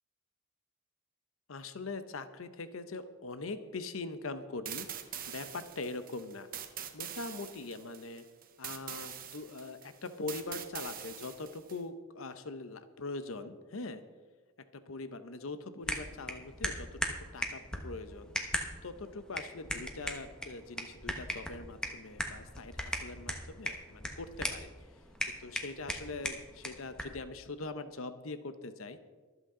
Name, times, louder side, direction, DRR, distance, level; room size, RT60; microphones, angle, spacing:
voice 1, 1.5-4.9 5.3-6.5 6.9-8.2 8.6-14.0 14.7-18.3 18.8-24.7 25.4-29.0, left 3 dB, 75° left, 11 dB, 0.8 m, -42 dB
sound 1, 4.6-11.8, right 10 dB, 45° right, 1.0 m, -44 dB
sound 2, 15.8-27.2, equal, 5° left, 1.1 m, -39 dB
24.5 x 8.1 x 3.8 m, 1.4 s
head